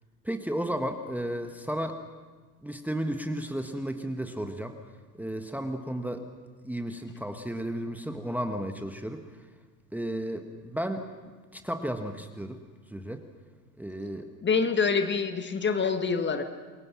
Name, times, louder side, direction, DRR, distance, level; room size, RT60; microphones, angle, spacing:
voice 1, 0.2-2.0 2.6-4.8 5.2-6.2 6.6-9.2 9.9-11.1 11.5-12.6 12.9-13.2 13.8-14.3, right 1 dB, 5° right, 6 dB, 1.6 m, -33 dB
voice 2, 14.4-16.4, left 5 dB, 20° left, 8 dB, 1.7 m, -26 dB
28.0 x 22.5 x 6.1 m, 1.4 s
figure-of-eight pair, 70°, 50 cm